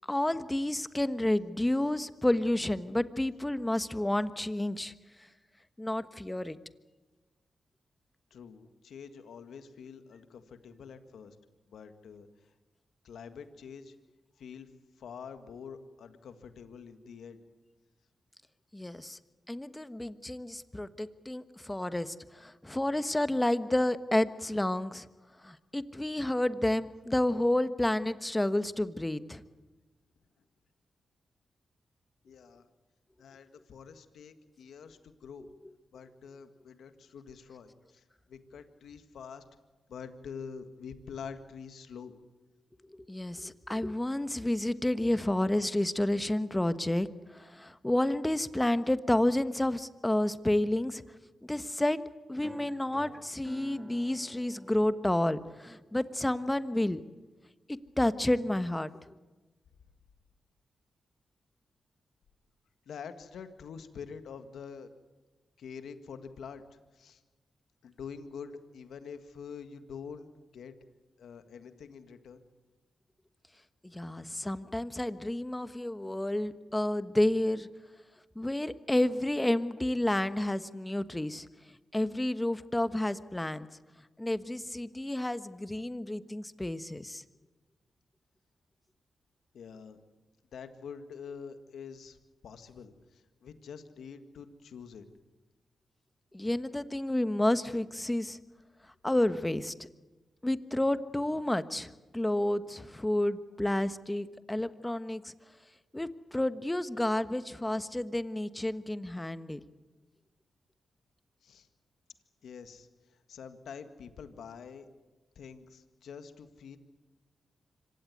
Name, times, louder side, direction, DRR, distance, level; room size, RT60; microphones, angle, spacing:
voice 1, 0.0-4.9 5.8-6.6 18.7-19.2 19.5-25.1 25.4-29.4 42.9-51.0 51.4-52.0 52.3-57.0 57.7-59.1 73.8-77.7 78.3-81.5 81.9-83.7 84.2-87.2 96.3-98.4 99.0-99.7 100.4-105.3 105.9-109.6, left 1 dB, 15° left, 13 dB, 1.3 m, -30 dB
voice 2, 8.3-11.3 11.7-12.3 13.0-13.9 14.4-14.7 15.0-17.4 32.2-32.6 33.2-35.5 35.9-38.0 38.3-39.4 39.9-42.1 62.8-64.9 65.6-66.6 66.9-67.2 67.8-70.7 71.2-72.4 89.5-90.0 90.5-92.2 92.4-95.0 111.4-111.7 112.4-114.9 115.3-116.8, left 6 dB, 80° left, 9 dB, 1.7 m, -46 dB
sound 1, 52.4-57.4, right 1 dB, 20° right, 2.3 m, -51 dB
25.5 x 16.5 x 9.4 m, 1.2 s
supercardioid pair, 50°, 0 cm